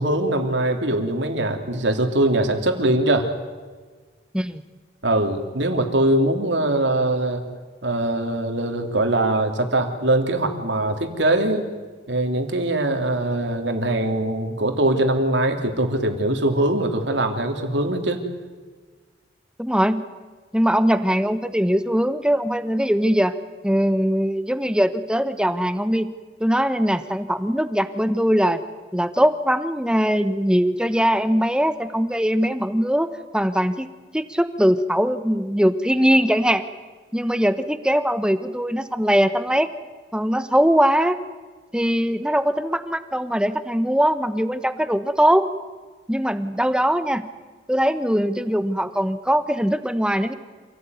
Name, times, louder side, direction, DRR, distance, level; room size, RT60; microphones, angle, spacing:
voice 1, 0.0-3.3 5.0-7.4 7.8-11.7 12.1-18.2, right 1 dB, 75° right, 5 dB, 3.2 m, -22 dB
voice 2, 19.6-20.0 20.5-23.3 23.6-26.1 26.4-28.6 28.9-33.9 34.1-36.7 37.1-39.7 40.1-41.2 41.7-45.5 46.1-47.2 47.7-50.3, equal, 5° right, 11 dB, 1.1 m, -21 dB
27.5 x 17.0 x 9.5 m, 1.4 s
head